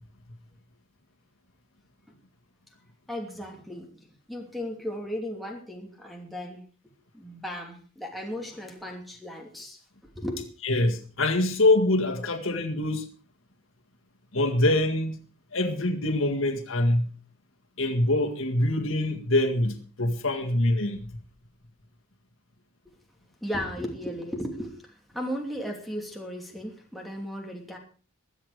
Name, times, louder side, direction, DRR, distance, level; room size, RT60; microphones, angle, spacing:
voice 1, 3.1-6.7 7.1-9.8 10.2-10.4 23.4-27.8, equal, ahead, 2.8 m, -36 dB
voice 2, 10.6-13.1 14.3-15.1 15.5-17.1 17.8-21.1, left 1 dB, 65° left, 1.9 m, -24 dB
22.0 x 8.2 x 5.0 m
head